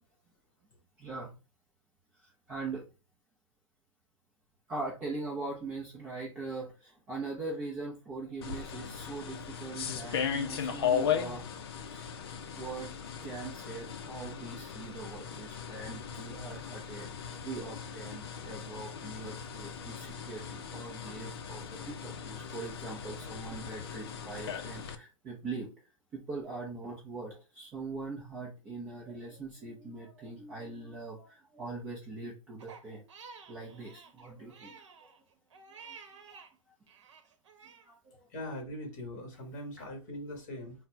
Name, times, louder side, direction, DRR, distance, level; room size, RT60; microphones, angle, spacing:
voice 1, 1.0-1.3 2.2-2.9 4.7-11.5 11.9-12.1 12.4-12.9 13.2-25.7 26.1-33.0 33.5-34.8 35.7-36.0 36.3-36.4 37.8-38.3 39.8-40.1, right 3 dB, 10° right, -3 dB, 0.5 m, -42 dB
sound 1, 8.4-24.9, left 7 dB, 50° left, 0.5 m, -37 dB
Crying sobbing, 32.6-36.5 36.9-37.9, right 5 dB, 60° right, 0.9 m, -52 dB
voice 2, 38.3-40.7, left 1 dB, 35° left, 3 dB, 1.3 m, -41 dB
4.1 x 2.1 x 4.3 m, 0.31 s
hypercardioid pair, 170°, 17 cm